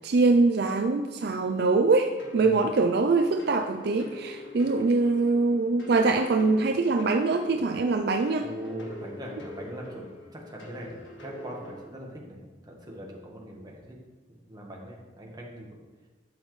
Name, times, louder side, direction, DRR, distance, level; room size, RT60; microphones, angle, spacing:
voice 1, 0.0-8.5, right 3 dB, 55° right, 5 dB, 0.4 m, -23 dB
sound 1, 2.2-11.8, left 1 dB, 70° left, 1.7 m, -43 dB
voice 2, 8.4-12.4 12.6-13.9 14.5-15.7, equal, 20° right, -2 dB, 1.4 m, -41 dB
11.5 x 7.1 x 3.2 m, 1.3 s
head